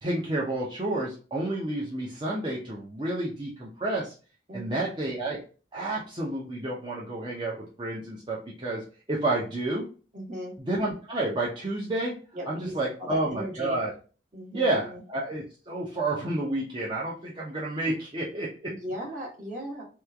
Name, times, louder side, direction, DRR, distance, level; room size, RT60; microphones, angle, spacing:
voice 1, 0.0-4.1 4.5-5.4 5.7-8.8 9.1-9.9 10.6-12.2 12.5-13.9 14.5-18.7, right 2 dB, 25° right, -5 dB, 0.6 m, -30 dB
voice 2, 4.5-4.9 10.1-10.5 12.3-13.8 14.3-15.0 18.7-19.9, equal, 45° right, -3 dB, 1.1 m, -37 dB
3.0 x 2.3 x 3.4 m, 0.37 s
head